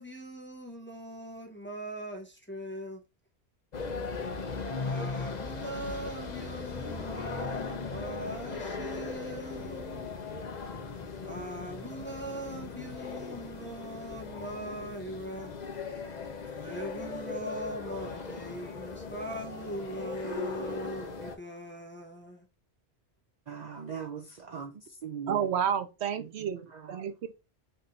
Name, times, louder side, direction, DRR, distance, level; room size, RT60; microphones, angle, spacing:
voice 1, 0.0-3.0 4.8-10.1 11.2-15.5 16.5-22.5, right 1 dB, 10° left, 0.8 m, -41 dB
sound 1, 3.7-21.4, left 4 dB, 45° left, 0.7 m, -38 dB
voice 2, 23.5-25.5 26.2-27.0, right 7 dB, 50° right, 0.6 m, -41 dB
voice 3, 25.3-26.6 26.9-27.1, right 8 dB, 75° right, 0.9 m, -29 dB
4.7 x 2.6 x 4.1 m
omnidirectional pair, 1.1 m